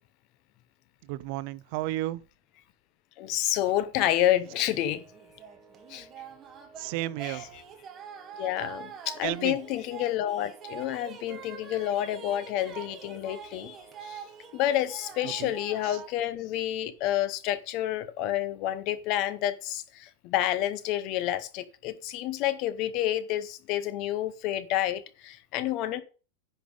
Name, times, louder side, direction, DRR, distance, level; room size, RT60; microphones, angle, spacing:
voice 1, 1.1-2.2 6.8-7.4 9.2-9.6 15.2-15.5 15.8-16.0, right 16 dB, 40° right, 0.4 m, -33 dB
voice 2, 3.2-5.0 5.9-6.1 7.2-7.5 8.4-14.2 14.5-26.0, left 12 dB, 35° left, 0.6 m, -29 dB
sound 1, 4.4-16.1, right 7 dB, 15° right, 1.1 m, -45 dB
10.0 x 5.3 x 5.2 m
supercardioid pair, 175°, 0 cm